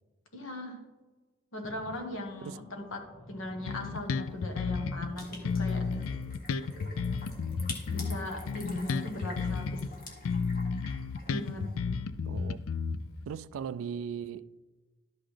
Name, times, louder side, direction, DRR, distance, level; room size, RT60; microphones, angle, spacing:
voice 1, 0.3-0.8 1.5-5.9 7.9-9.8 11.3-11.7, left 1 dB, 65° left, 1.4 m, -38 dB
sound 1, 1.6-9.6, equal, 5° left, 1.2 m, -52 dB
Bass guitar, 3.7-5.1 5.4-9.9 10.2-13.3, left 5 dB, 80° left, 0.4 m, -32 dB
sound 2, 5.2-11.8, left 2 dB, 45° left, 1.5 m, -47 dB
voice 2, 12.2-12.7 13.3-14.6, right 7 dB, 70° right, 0.3 m, -38 dB
12.0 x 5.8 x 3.3 m
head